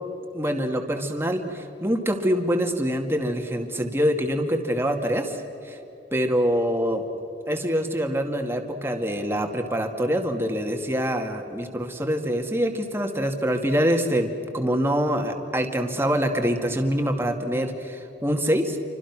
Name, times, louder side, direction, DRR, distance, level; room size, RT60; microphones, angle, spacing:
voice 1, 0.3-5.4 5.6-5.8 6.1-7.0 7.5-18.8, equal, 15° right, 3 dB, 2.2 m, -25 dB
29.0 x 25.0 x 6.1 m, 2.9 s
head